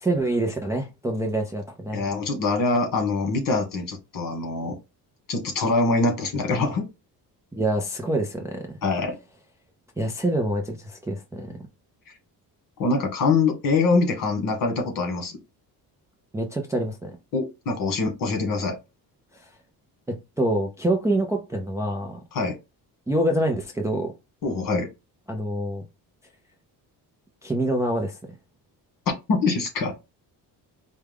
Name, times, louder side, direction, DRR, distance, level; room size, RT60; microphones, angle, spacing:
voice 1, 0.0-2.0 7.5-8.7 10.0-11.5 16.3-17.2 20.1-22.2 23.1-24.1 25.3-25.8 27.4-28.2, right 1 dB, 10° right, 0.4 m, -26 dB
voice 2, 1.9-4.7 5.3-6.8 8.8-9.2 12.8-15.3 17.3-18.8 22.3-22.6 24.4-24.9 29.3-29.9, left 3 dB, 55° left, 1.5 m, -24 dB
4.7 x 2.2 x 3.4 m
cardioid pair, 165°, 40 cm